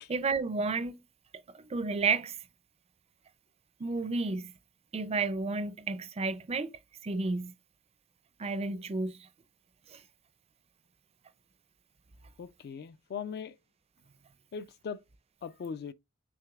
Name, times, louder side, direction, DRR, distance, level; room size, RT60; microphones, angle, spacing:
voice 1, 0.1-1.0 1.5-2.4 3.8-4.5 4.9-6.7 7.0-7.5 8.4-9.1 9.9-10.0, right 4 dB, 30° right, 0.4 m, -31 dB
voice 2, 12.4-13.6 14.5-15.0 15.4-15.9, left 6 dB, 45° left, 0.3 m, -39 dB
6.0 x 3.2 x 2.3 m
head